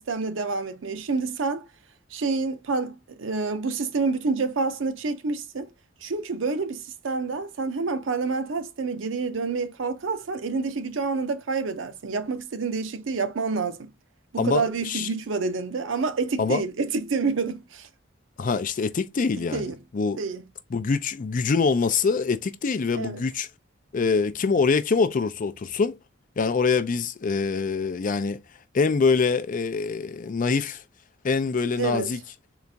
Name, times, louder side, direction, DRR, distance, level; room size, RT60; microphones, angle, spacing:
voice 1, 0.0-1.7 2.1-5.7 6.0-13.9 14.3-17.9 19.5-19.8 20.2-20.4 22.9-23.2 31.8-32.1, right 4 dB, 80° right, 0.6 m, -28 dB
voice 2, 14.4-15.1 16.4-16.6 18.4-19.7 19.9-20.2 20.7-23.5 23.9-26.0 26.4-28.4 28.7-30.8 31.2-32.2, left 4 dB, 45° left, 0.4 m, -24 dB
4.0 x 2.4 x 3.3 m
head